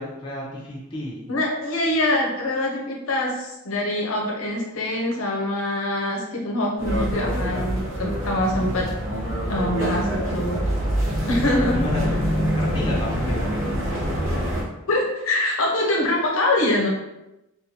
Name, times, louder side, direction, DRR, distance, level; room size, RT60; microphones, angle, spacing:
voice 1, 0.0-1.3 8.5-8.8 11.7-12.3 12.5-13.6, left 1 dB, 20° left, -5 dB, 0.8 m, -31 dB
voice 2, 1.3-8.9 9.5-10.6 11.3-11.8 14.9-16.9, left 1 dB, 70° left, -1 dB, 0.6 m, -24 dB
sound 1, 6.8-14.6, equal, 60° right, 0.8 m, -25 dB
4.3 x 2.3 x 2.8 m, 0.92 s
head